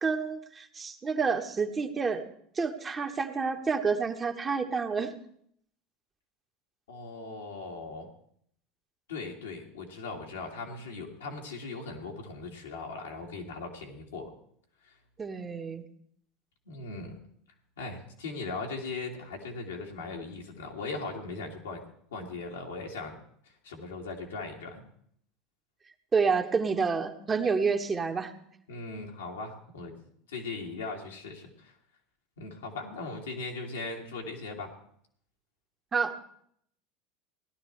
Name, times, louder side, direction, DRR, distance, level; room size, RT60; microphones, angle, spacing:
voice 1, 0.0-2.3 2.6-5.1 15.2-15.8 26.1-28.3 35.9-36.2, right 5 dB, 25° right, 5 dB, 1.3 m, -29 dB
voice 2, 6.9-8.1 9.1-14.3 14.8-14.9 16.7-17.1 17.8-21.8 22.1-23.2 23.6-24.8 28.7-29.9 30.3-31.7 32.4-34.7, left 3 dB, 85° left, 0 dB, 2.1 m, -39 dB
17.0 x 11.5 x 3.3 m, 0.66 s
hypercardioid pair, 80°, 0 cm